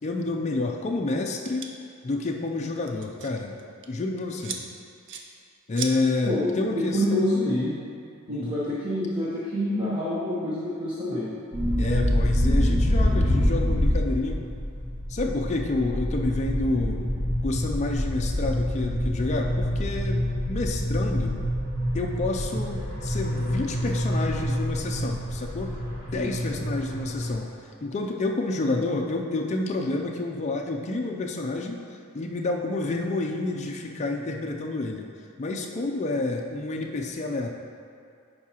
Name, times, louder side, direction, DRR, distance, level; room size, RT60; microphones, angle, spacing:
voice 1, 0.0-1.7 2.0-3.6 3.9-4.6 5.7-7.0 8.3-8.5 11.8-14.4 15.1-17.1 17.4-21.4 21.9-25.7 26.1-27.5 27.8-31.8 32.1-35.1 35.4-37.5, left 2 dB, 35° left, 0 dB, 0.4 m, -29 dB
sound 1, 1.4-1.7 2.6-3.3 3.6-3.9 4.4-4.6 5.1-5.2 5.8-5.9, right 6 dB, 60° right, 0.6 m, -35 dB
voice 2, 6.2-7.7 8.3-11.3 26.1-26.3, left 1 dB, 25° right, -9 dB, 1.0 m, -27 dB
sound 2, 11.5-27.3, equal, 40° right, 1.7 m, -26 dB
11.0 x 4.7 x 2.9 m, 2.4 s
head